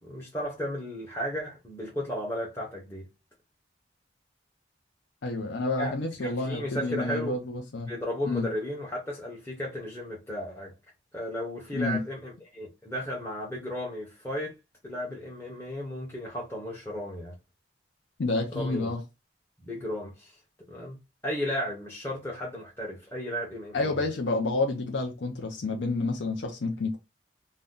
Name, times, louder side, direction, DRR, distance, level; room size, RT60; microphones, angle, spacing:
voice 1, 0.0-3.1 5.8-5.9 6.2-7.4 7.9-10.7 11.1-14.5 14.8-17.3 18.5-18.9 19.6-20.4 20.7-21.0 21.2-24.0, equal, 15° left, 0.7 m, -34 dB
voice 2, 5.2-7.9 8.2-8.5 11.7-12.0 18.2-19.0 23.7-27.0, left 3 dB, 80° left, 0.6 m, -29 dB
2.6 x 2.2 x 3.5 m
head